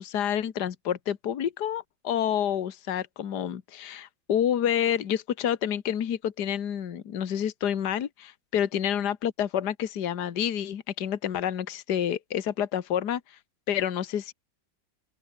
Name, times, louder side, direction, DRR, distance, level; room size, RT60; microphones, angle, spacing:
voice 1, 0.0-13.2 13.7-14.3, left 9 dB, 60° left, 1.9 m, -28 dB
open air
omnidirectional pair, 2.0 m